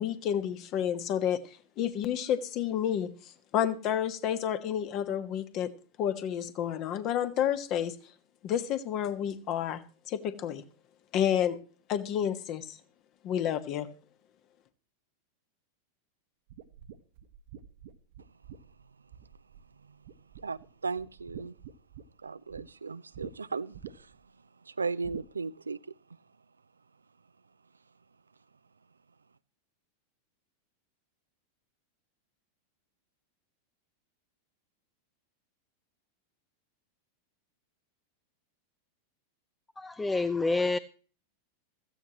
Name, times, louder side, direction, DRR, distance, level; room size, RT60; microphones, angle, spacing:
voice 1, 0.0-5.7 6.0-8.0 8.4-9.8 10.1-10.6 11.1-11.6 11.9-12.8 13.2-13.9, left 9 dB, 40° left, 1.4 m, -30 dB
sound 1, 16.5-19.7 20.0-20.7 21.0-22.7 23.1-23.3 23.7-24.2 25.0-25.3, right 10 dB, 50° right, 1.1 m, -47 dB
voice 2, 20.4-21.5 22.2-24.3 24.6-25.8, right 4 dB, 75° right, 0.5 m, -36 dB
voice 3, 39.8-40.8, left 3 dB, 10° left, 0.5 m, -28 dB
16.0 x 15.0 x 3.0 m
figure-of-eight pair, 90°, 0 cm